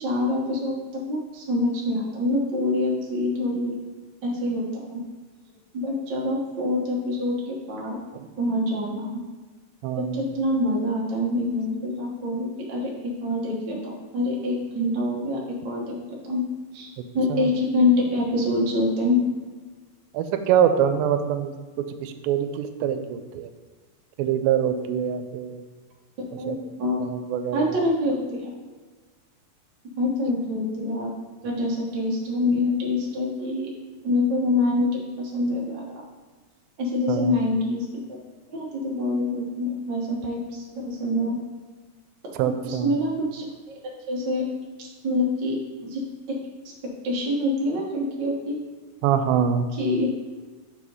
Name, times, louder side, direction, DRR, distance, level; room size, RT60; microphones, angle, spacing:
voice 1, 0.0-3.7 4.2-5.0 5.7-8.0 8.4-9.2 10.0-16.4 16.7-16.9 17.1-19.2 26.4-27.0 27.5-28.5 30.0-31.1 31.4-33.7 34.0-35.8 36.8-37.8 38.5-41.4 42.6-43.8 44.1-44.4 44.8-45.5 45.8-46.0 46.3-46.4 47.0-48.6 49.8-50.1, left 2 dB, 55° right, -3 dB, 1.2 m, -25 dB
voice 2, 9.8-10.3 17.3-17.6 20.1-21.5 22.0-23.5 24.2-25.6 26.5-26.6 27.0-28.0 37.1-37.4 42.3-43.0 49.0-49.7, right 8 dB, 90° right, 8 dB, 2.4 m, -24 dB
5.9 x 4.8 x 5.3 m, 1.4 s
omnidirectional pair, 4.1 m